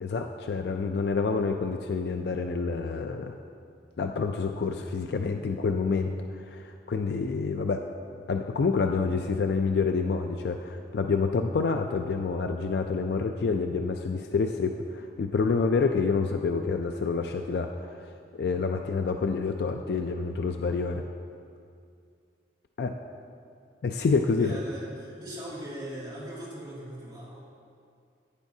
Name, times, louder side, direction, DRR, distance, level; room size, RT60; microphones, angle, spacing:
voice 1, 0.0-3.3 4.0-6.1 6.5-7.8 8.3-17.9 18.3-21.0 22.8-22.9 23.8-24.6, left 4 dB, 60° left, 5 dB, 0.3 m, -28 dB
voice 2, 24.4-27.4, right 1 dB, 25° right, -8 dB, 2.2 m, -40 dB
10.5 x 9.3 x 2.7 m, 2.3 s
head